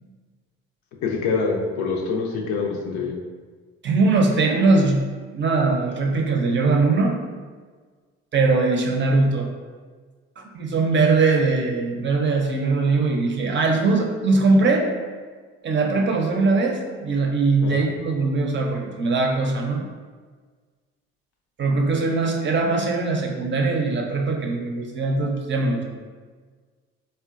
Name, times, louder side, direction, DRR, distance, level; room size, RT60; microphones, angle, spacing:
voice 1, 1.0-3.2 17.6-17.8, left 4 dB, 70° left, 0 dB, 0.6 m, -25 dB
voice 2, 3.8-5.0 5.3-7.2 8.3-9.5 10.4-14.9 15.6-19.9 21.6-25.8, right 3 dB, 40° right, 1 dB, 0.6 m, -21 dB
3.7 x 2.2 x 2.4 m, 1.5 s
hypercardioid pair, 60°, 30 cm